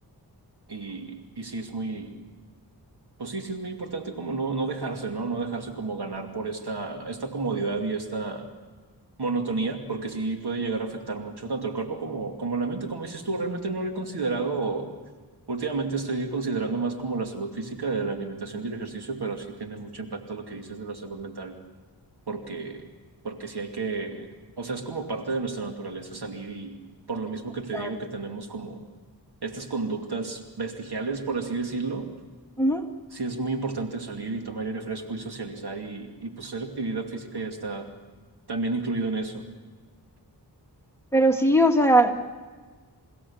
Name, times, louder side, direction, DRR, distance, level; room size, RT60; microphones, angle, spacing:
voice 1, 0.7-2.2 3.2-8.5 9.2-14.9 15.5-21.6 22.3-22.8 23.2-24.3 24.6-26.8 27.1-28.8 29.4-32.1 33.1-37.9 38.5-39.4, right 3 dB, 70° right, 4 dB, 2.6 m, -31 dB
voice 2, 41.1-42.1, right 1 dB, 5° left, 2 dB, 2.2 m, -20 dB
29.0 x 16.0 x 7.2 m, 1.4 s
cardioid pair, 50°, 40 cm